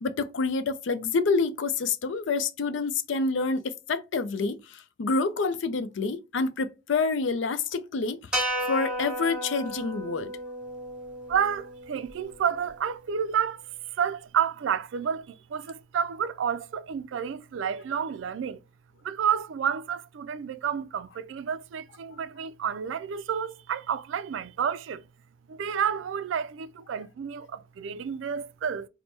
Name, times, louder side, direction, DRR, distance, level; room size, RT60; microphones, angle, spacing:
voice 1, 0.0-8.2 8.7-10.3, left 4 dB, 75° left, 0.5 m, -27 dB
sound 1, 8.3-12.7, right 1 dB, 5° right, 1.1 m, -34 dB
voice 2, 11.3-13.6 13.9-18.6 19.0-25.0 25.5-28.9, right 8 dB, 85° right, 0.3 m, -30 dB
4.3 x 2.1 x 3.2 m
head